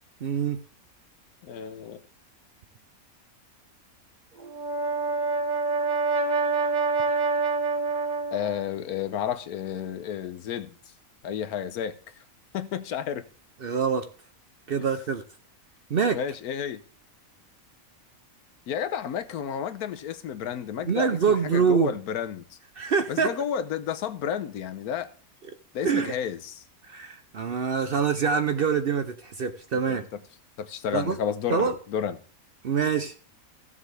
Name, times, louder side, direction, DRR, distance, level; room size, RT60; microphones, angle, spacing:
voice 1, 0.2-0.6 13.6-14.1 14.7-15.2 15.9-16.2 20.9-21.9 22.8-23.3 25.8-26.1 26.8-30.0 30.9-31.2 31.5-31.8 32.6-33.1, right 6 dB, 55° right, 0.7 m, -25 dB
voice 2, 1.4-2.0 8.3-10.7 11.2-11.9 12.5-13.3 16.1-16.8 18.7-22.6 23.1-25.1 25.7-26.6 29.9-30.0 30.6-32.2, left 8 dB, 85° left, 1.3 m, -31 dB
Brass instrument, 4.4-8.7, right 3 dB, 35° right, 1.0 m, -26 dB
15.0 x 7.2 x 3.3 m
omnidirectional pair, 1.5 m